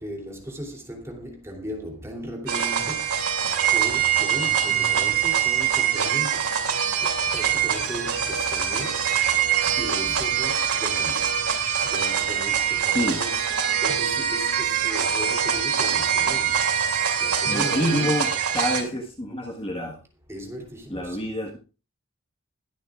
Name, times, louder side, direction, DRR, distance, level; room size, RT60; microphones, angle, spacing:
voice 1, 0.0-11.4 11.8-13.4 13.8-16.8 17.2-18.2 20.3-21.2, equal, 10° right, 3.0 m, -37 dB
sound 1, 2.5-18.8, right 8 dB, 80° right, 2.7 m, -24 dB
voice 2, 17.5-20.0 20.9-21.6, left 1 dB, 25° left, 1.4 m, -27 dB
21.0 x 9.1 x 2.4 m
head